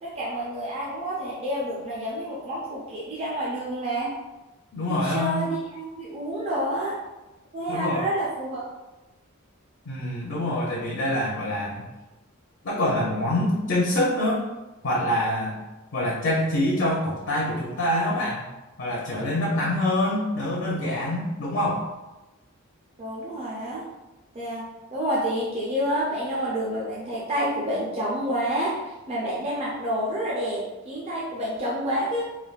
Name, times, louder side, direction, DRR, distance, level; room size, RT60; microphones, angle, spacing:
voice 1, 0.0-4.2 4.9-7.0 7.5-8.7 23.0-23.9 24.3-32.2, equal, 30° right, -6 dB, 0.4 m, -29 dB
voice 2, 4.7-5.5 7.7-8.1 9.9-11.9 12.6-14.5 14.8-15.6 15.9-18.5 18.8-21.9, left 1 dB, 60° left, -4 dB, 0.5 m, -25 dB
3.3 x 2.2 x 2.3 m, 1.1 s
head